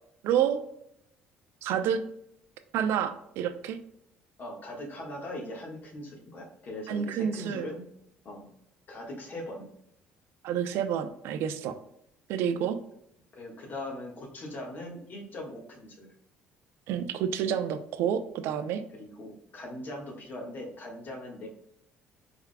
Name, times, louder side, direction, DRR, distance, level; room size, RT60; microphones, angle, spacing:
voice 1, 0.2-0.6 1.6-2.0 2.7-3.8 6.9-7.7 10.4-11.8 12.3-12.8 16.9-18.8, right 8 dB, 75° right, 10 dB, 0.5 m, -29 dB
voice 2, 4.4-7.9 8.2-8.5 8.9-9.7 13.3-16.1 18.9-21.5, left 1 dB, 45° left, 0 dB, 1.5 m, -40 dB
4.7 x 3.5 x 2.2 m, 0.76 s
cardioid pair, 100°, 4 cm